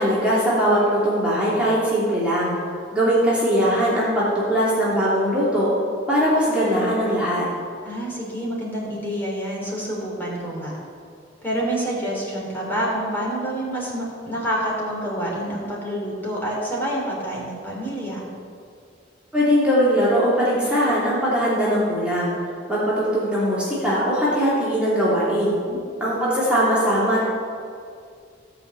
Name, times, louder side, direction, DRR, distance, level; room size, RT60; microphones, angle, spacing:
voice 1, 0.0-2.5 2.9-5.7 6.1-7.5 19.3-22.4 22.7-25.6 26.0-27.2, equal, 5° right, -9 dB, 2.8 m, -20 dB
voice 2, 7.8-10.7 11.4-18.2 25.7-25.8, right 1 dB, 10° left, -5 dB, 3.2 m, -27 dB
15.5 x 5.7 x 8.1 m, 2.3 s
head